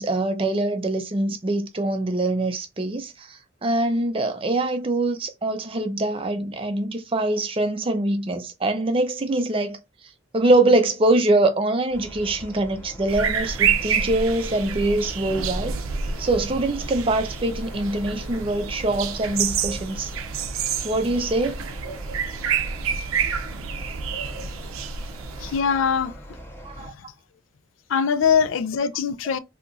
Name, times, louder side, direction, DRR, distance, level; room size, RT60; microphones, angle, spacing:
voice 1, 0.0-3.3 3.6-9.8 10.3-15.8 16.2-20.1 20.8-21.6 26.6-26.9, right 2 dB, 25° right, 0.4 m, -23 dB
sound 1, 11.9-26.9, equal, 10° left, 0.6 m, -42 dB
sound 2, 13.1-25.6, right 6 dB, 80° right, 0.5 m, -28 dB
voice 2, 25.4-26.2 26.8-27.0 27.9-29.4, left 6 dB, 70° left, 0.4 m, -22 dB
2.8 x 2.4 x 3.7 m
head